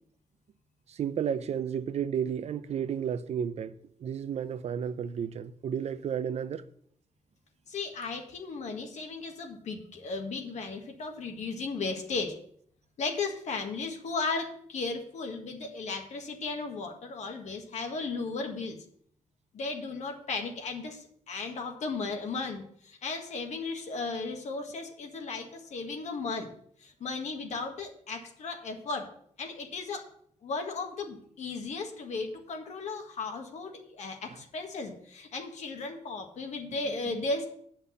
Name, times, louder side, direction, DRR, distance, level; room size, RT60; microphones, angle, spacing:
voice 1, 0.9-6.6 34.3-34.4 37.1-37.2, right 8 dB, 60° right, 0.6 m, -32 dB
voice 2, 7.7-12.3 13.0-18.8 19.5-26.5 26.8-29.1 29.4-30.1 30.4-37.5, left 3 dB, 70° left, 1.7 m, -35 dB
8.4 x 5.8 x 7.0 m
cardioid pair, 120°, 12 cm